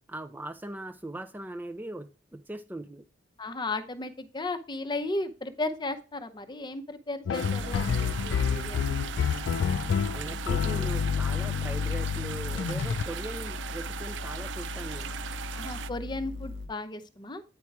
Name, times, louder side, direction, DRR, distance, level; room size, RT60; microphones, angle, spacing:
voice 1, 0.1-3.1 10.1-15.2, right 1 dB, 10° right, 7 dB, 0.4 m, -40 dB
voice 2, 3.4-9.0 15.5-17.4, left 2 dB, 25° left, 10 dB, 0.7 m, -35 dB
sound 1, 7.3-13.0, left 7 dB, 80° left, 0.3 m, -28 dB
sound 2, 7.3-15.9, right 9 dB, 70° right, 0.4 m, -39 dB
sound 3, 7.6-16.7, left 3 dB, 90° right, 1.3 m, -39 dB
9.5 x 4.5 x 4.6 m, 0.35 s
head